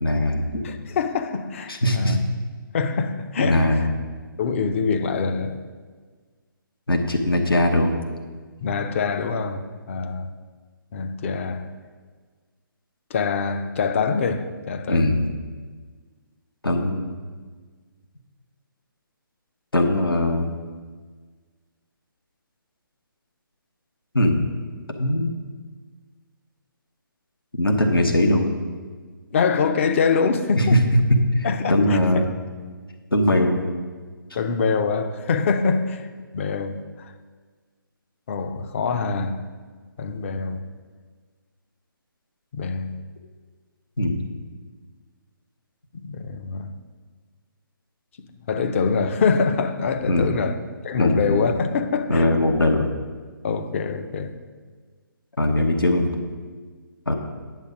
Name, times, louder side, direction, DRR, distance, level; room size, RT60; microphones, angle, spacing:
voice 1, 0.0-0.7 1.7-2.2 3.4-3.9 6.9-8.0 14.9-15.3 16.6-17.0 19.7-20.5 24.1-24.4 25.0-25.3 27.6-28.6 30.6-30.8 31.1-32.3 33.1-33.6 44.0-44.2 50.1-50.3 51.0-51.4 52.1-52.9 55.4-56.1 57.1-57.2, left 1 dB, 85° left, 1.1 m, -20 dB
voice 2, 0.6-2.2 2.7-3.8 4.4-5.6 8.6-10.3 10.9-11.7 13.1-15.2 29.3-30.8 31.4-32.2 34.3-37.1 38.3-39.4 40.0-40.6 42.5-43.0 45.9-46.7 48.5-50.6 50.8-52.3 53.4-54.4, left 5 dB, 35° left, 0.6 m, -24 dB
9.2 x 6.9 x 5.0 m
figure-of-eight pair, 140°, 12 cm